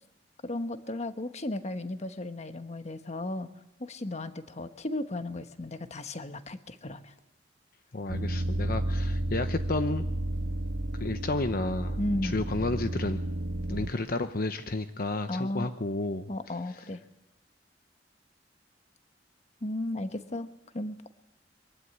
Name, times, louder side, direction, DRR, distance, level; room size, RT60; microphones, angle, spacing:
voice 1, 0.4-3.5 3.8-7.1 12.0-12.4 15.3-15.7 16.3-17.0 19.6-20.5 20.7-21.1, left 1 dB, 40° left, 10 dB, 1.2 m, -34 dB
voice 2, 7.9-10.0 11.0-13.2 13.7-16.3, left 2 dB, 55° left, 9 dB, 0.9 m, -31 dB
sound 1, 8.1-13.9, right 1 dB, 85° right, 1.4 m, -32 dB
23.0 x 15.5 x 9.8 m, 0.93 s
head